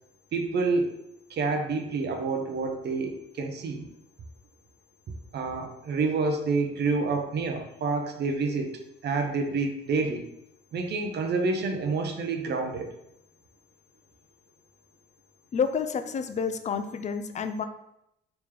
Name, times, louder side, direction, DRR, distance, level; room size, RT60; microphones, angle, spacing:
voice 1, 0.3-1.0 1.3-3.9 5.3-10.2 10.7-12.9, right 4 dB, 60° right, 4 dB, 0.6 m, -28 dB
voice 2, 15.5-17.7, left 6 dB, 35° left, 9 dB, 0.4 m, -29 dB
3.3 x 3.0 x 3.4 m, 0.80 s
cardioid pair, 90°, 20 cm